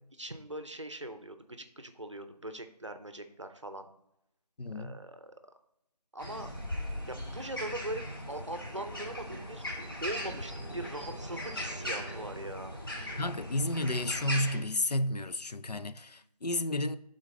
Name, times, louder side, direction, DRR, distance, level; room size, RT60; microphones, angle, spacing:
voice 1, 0.1-3.9 4.7-5.3 6.1-6.5 7.1-9.6 10.0-12.8, right 1 dB, 45° right, 0.6 m, -41 dB
voice 2, 4.6-4.9 13.2-17.0, left 1 dB, 75° left, 0.5 m, -31 dB
sound 1, 6.2-14.6, equal, 35° left, 1.2 m, -39 dB
8.4 x 4.0 x 3.8 m
figure-of-eight pair, 175°, 21 cm